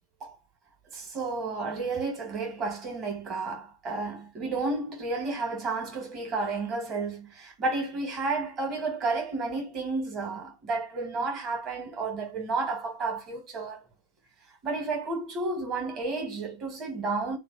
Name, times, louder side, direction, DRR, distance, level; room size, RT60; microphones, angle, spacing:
voice 1, 0.9-13.8 14.6-17.4, right 3 dB, 30° right, 1.7 m, -31 dB
3.1 x 2.5 x 3.9 m
figure-of-eight pair, 90°, 0 cm